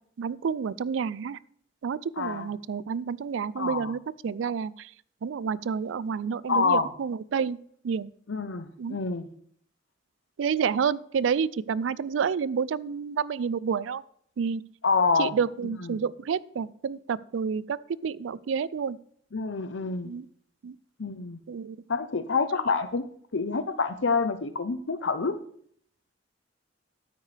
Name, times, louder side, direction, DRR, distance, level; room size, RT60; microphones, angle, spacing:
voice 1, 0.2-1.4 1.8-4.9 5.2-7.6 7.8-8.1 8.8-9.0 10.4-14.0 14.4-14.6 15.2-19.0 20.0-20.2 20.6-20.8 21.5-21.8, right 6 dB, 80° right, 21 dB, 0.4 m, -29 dB
voice 2, 2.2-2.5 3.6-3.9 6.5-6.9 8.3-9.3 14.8-15.4 15.6-16.0 19.3-20.1 21.0-21.4 21.9-23.1 23.3-25.4, left 4 dB, 75° left, 11 dB, 0.8 m, -27 dB
12.5 x 9.3 x 3.4 m, 0.63 s
head